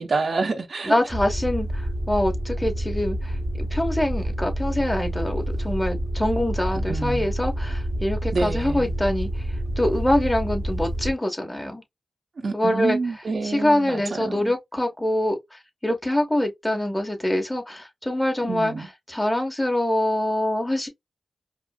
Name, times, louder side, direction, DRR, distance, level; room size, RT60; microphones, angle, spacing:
voice 1, 0.0-1.0 6.7-7.3 8.3-8.9 12.4-14.5 18.4-18.9, right 3 dB, 65° right, 0.8 m, -28 dB
voice 2, 0.9-9.5 9.8-11.8 12.5-13.0 13.4-18.7 19.1-20.9, left 1 dB, 15° left, 1.1 m, -24 dB
sound 1, 1.1-11.1, equal, 20° right, 0.8 m, -28 dB
5.0 x 2.0 x 2.3 m
cardioid pair, 50°, 0 cm